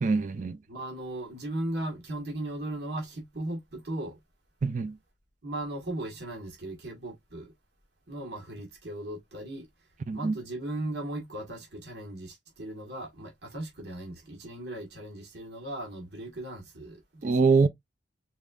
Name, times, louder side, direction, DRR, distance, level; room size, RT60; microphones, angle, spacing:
voice 1, 0.0-0.6 4.6-5.0 10.1-10.3 17.2-17.7, right 4 dB, 40° right, 0.3 m, -24 dB
voice 2, 0.7-4.2 5.4-7.5 8.1-9.7 10.1-17.6, right 1 dB, 60° right, 1.5 m, -37 dB
4.2 x 3.5 x 2.4 m
head